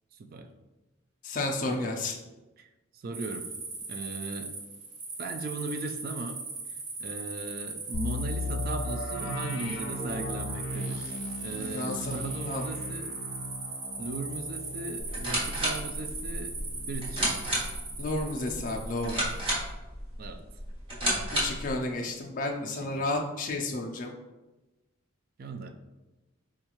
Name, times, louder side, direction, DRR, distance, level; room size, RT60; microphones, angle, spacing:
voice 1, 0.2-0.5 1.7-1.8 2.6-3.5 3.9-4.5 5.2-6.4 7.0-13.1 14.0-16.5 16.9-17.6 20.2-20.4 22.6-22.7 25.4-25.7, right 3 dB, 45° right, 7 dB, 0.3 m, -38 dB
voice 2, 1.2-2.2 11.7-12.7 18.0-19.3 21.4-24.1, left 2 dB, 40° left, 1 dB, 0.3 m, -32 dB
sound 1, 3.1-19.6, right 3 dB, 65° right, 0.7 m, -39 dB
sound 2, 7.9-17.7 18.0-18.1 18.6-18.9, left 2 dB, 75° left, 0.7 m, -37 dB
sound 3, 15.0-21.7, right 1 dB, 25° right, 0.9 m, -32 dB
4.4 x 2.3 x 2.9 m, 1.1 s
head